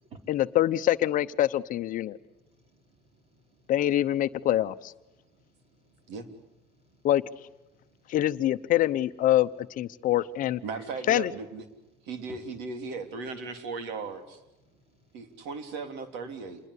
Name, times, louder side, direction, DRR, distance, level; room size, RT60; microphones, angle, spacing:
voice 1, 0.3-2.2 3.7-4.9 7.0-7.2 8.1-10.6 11.1-11.3, left 13 dB, 50° left, 11 dB, 0.8 m, -25 dB
voice 2, 2.4-3.6 5.1-6.2 6.7-7.0 7.7-8.2 11.9-12.4 14.7-15.4, right 4 dB, 35° right, 6 dB, 4.3 m, -56 dB
voice 3, 10.6-11.6 12.1-14.4 15.1-16.6, right 4 dB, 85° right, 8 dB, 3.2 m, -37 dB
27.5 x 21.5 x 8.4 m, 0.98 s
cardioid pair, 150°, 18 cm